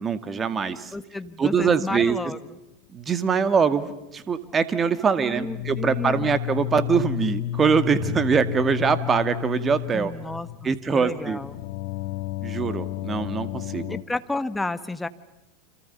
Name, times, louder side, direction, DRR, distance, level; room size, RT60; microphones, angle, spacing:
voice 1, 0.0-0.9 1.4-2.2 2.9-10.1 10.6-11.4 12.4-14.0, right 6 dB, 25° right, 12 dB, 2.0 m, -23 dB
voice 2, 0.9-2.4 5.2-6.3 9.9-11.5 13.9-15.1, left 2 dB, 10° left, 13 dB, 1.3 m, -31 dB
sound 1, 5.3-14.0, left 14 dB, 55° left, 1.1 m, -32 dB
sound 2, 8.0-9.5 9.8-11.5, right 6 dB, 40° right, 3.1 m, -44 dB
30.0 x 27.0 x 6.9 m, 0.96 s
figure-of-eight pair, 90°, 0 cm